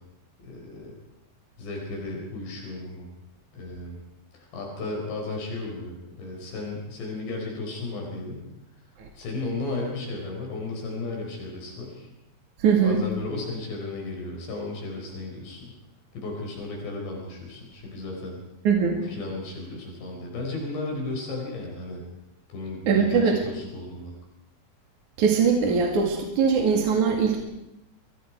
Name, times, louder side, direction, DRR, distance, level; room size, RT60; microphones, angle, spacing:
voice 1, 0.4-0.9 1.6-3.1 3.5-4.0 4.3-8.5 9.2-12.1 12.8-15.8 16.2-18.4 19.0-22.0 22.5-24.1, left 2 dB, 75° left, 0 dB, 6.9 m, -34 dB
voice 2, 12.6-13.0 18.6-19.0 22.9-23.4 25.2-27.4, right 6 dB, 50° right, 1 dB, 3.4 m, -21 dB
29.5 x 24.0 x 4.7 m, 0.87 s
omnidirectional pair, 5.1 m